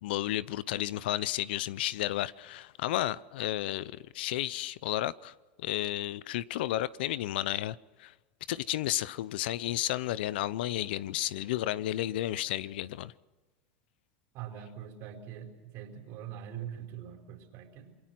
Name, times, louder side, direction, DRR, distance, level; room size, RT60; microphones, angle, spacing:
voice 1, 0.0-8.1 8.5-13.1, left 14 dB, 75° left, 0.7 m, -32 dB
voice 2, 14.3-18.0, right 9 dB, 55° right, 4.7 m, -43 dB
28.0 x 22.5 x 6.0 m
hypercardioid pair, 100°, 6 cm